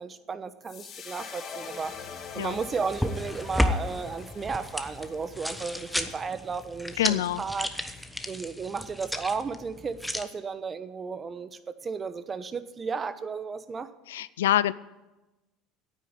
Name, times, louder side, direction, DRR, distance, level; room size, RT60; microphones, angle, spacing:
voice 1, 0.0-1.9 2.3-7.7 8.3-13.9, right 5 dB, 30° right, 13 dB, 0.9 m, -34 dB
sound 1, 0.6-7.0, left 6 dB, 45° left, 2.0 m, -44 dB
sound 2, 2.5-10.2, left 1 dB, 5° left, 1.0 m, -33 dB
voice 2, 7.0-7.4 14.1-14.7, left 13 dB, 90° left, 19 dB, 0.3 m, -25 dB
9.4 x 8.8 x 9.1 m, 1.1 s
supercardioid pair, 90°, 0 cm